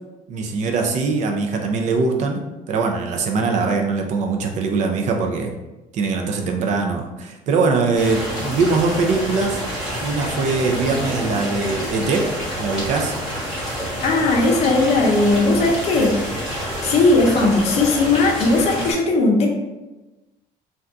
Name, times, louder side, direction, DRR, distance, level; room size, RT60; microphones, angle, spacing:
voice 1, 0.3-2.4 2.7-5.5 5.9-12.3 12.6-13.1, right 4 dB, 50° right, 3 dB, 0.4 m, -22 dB
sound 1, 7.9-18.9, equal, 5° right, 1.2 m, -28 dB
voice 2, 14.0-16.5 16.8-19.5, left 2 dB, 40° left, 1 dB, 0.5 m, -18 dB
2.6 x 2.3 x 3.4 m, 1.1 s
cardioid pair, 170°, 16 cm